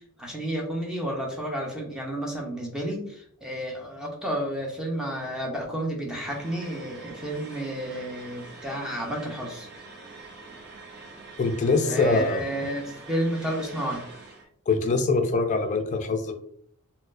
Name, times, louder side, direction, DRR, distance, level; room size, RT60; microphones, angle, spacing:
voice 1, 0.2-9.7 11.9-14.0, right 1 dB, 5° right, -1 dB, 0.6 m, -31 dB
sound 1, 6.2-14.4, right 3 dB, 50° right, 0.7 m, -44 dB
voice 2, 11.4-12.5 14.7-16.3, left 3 dB, 35° left, 6 dB, 0.4 m, -23 dB
4.1 x 2.0 x 2.5 m, 0.65 s
head